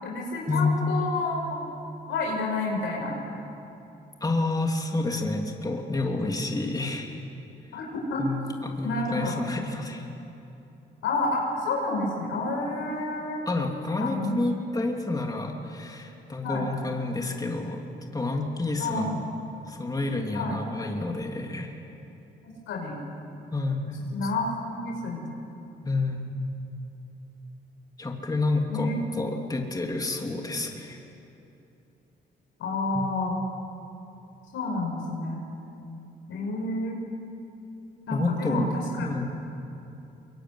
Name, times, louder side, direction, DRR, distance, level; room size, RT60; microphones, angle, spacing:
voice 1, 0.0-1.6 2.1-3.2 7.7-8.2 8.8-9.4 11.0-13.4 14.0-14.3 16.4-16.7 18.8-19.2 20.3-20.6 22.4-23.0 24.1-25.3 28.7-29.0 32.6-33.4 34.5-35.4 36.3-37.0 38.1-39.1, left 2 dB, 80° left, -1 dB, 5.7 m, -29 dB
voice 2, 4.2-7.1 8.2-10.1 13.5-17.8 18.1-19.2 19.7-21.8 23.5-24.3 25.8-26.6 28.0-31.0 32.9-33.0 38.1-39.2, left 2 dB, 20° left, 1 dB, 3.0 m, -29 dB
24.0 x 23.5 x 9.7 m, 2.8 s
cardioid pair, 90°, 20 cm